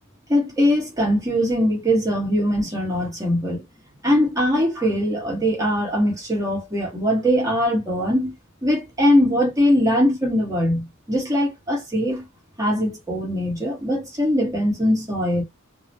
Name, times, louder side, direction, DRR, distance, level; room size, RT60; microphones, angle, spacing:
voice 1, 0.3-3.6 4.0-8.3 8.6-12.2 12.6-15.4, equal, 15° right, 1.2 m, -21 dB
2.9 x 2.0 x 2.7 m
head